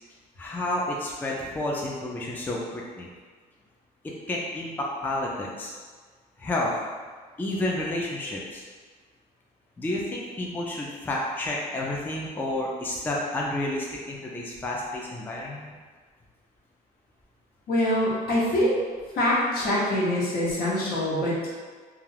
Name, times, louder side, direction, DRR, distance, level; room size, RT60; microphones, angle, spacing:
voice 1, 0.4-3.1 4.0-5.7 6.4-6.7 7.4-8.6 9.8-15.7, left 1 dB, 10° left, -3 dB, 0.3 m, -30 dB
voice 2, 17.7-18.8 19.1-21.5, left 1 dB, 65° left, -5 dB, 0.9 m, -24 dB
2.3 x 2.3 x 3.2 m, 1.5 s
cardioid pair, 110°, 17 cm